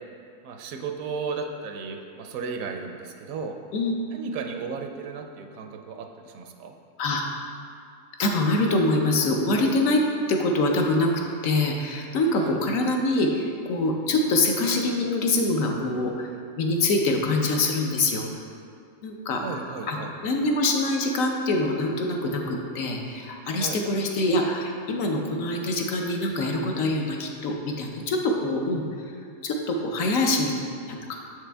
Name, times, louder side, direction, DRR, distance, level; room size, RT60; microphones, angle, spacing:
voice 1, 0.4-3.6 4.1-6.7 12.3-12.6 19.4-20.1 23.6-23.8, right 5 dB, 75° right, 4 dB, 1.0 m, -35 dB
voice 2, 8.2-10.0 10.3-11.1 11.4-16.3 16.6-18.2 19.0-19.6 19.9-28.8 29.4-30.5 30.9-31.2, left 2 dB, 70° left, 1 dB, 1.0 m, -24 dB
7.2 x 5.1 x 3.4 m, 2.4 s
omnidirectional pair, 1.5 m